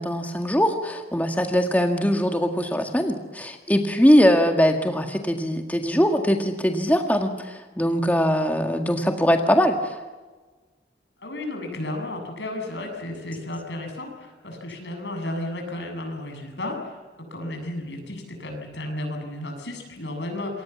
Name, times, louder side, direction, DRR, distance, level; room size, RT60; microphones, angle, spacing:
voice 1, 0.0-10.0, equal, 10° left, 4 dB, 1.8 m, -21 dB
voice 2, 11.2-17.0 17.3-20.6, left 1 dB, 85° left, 4 dB, 7.8 m, -33 dB
28.0 x 23.5 x 7.3 m, 1.3 s
head